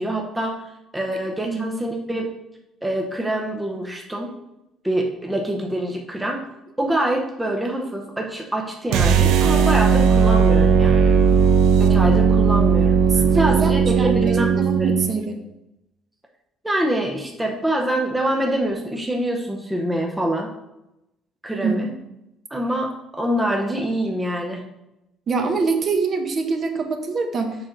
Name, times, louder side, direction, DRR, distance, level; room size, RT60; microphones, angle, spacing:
voice 1, 0.0-2.3 2.8-4.3 4.8-6.4 6.8-11.1 11.8-15.0 16.6-20.5 21.4-21.9 22.5-24.7, right 1 dB, 5° right, 1 dB, 0.7 m, -25 dB
voice 2, 1.1-1.6 11.3-11.4 13.1-15.4 21.6-21.9 25.3-27.6, right 4 dB, 30° right, 5 dB, 0.8 m, -25 dB
sound 1, 8.9-15.1, right 6 dB, 85° right, 0.8 m, -17 dB
7.0 x 5.7 x 3.8 m, 0.90 s
cardioid pair, 165°, 0 cm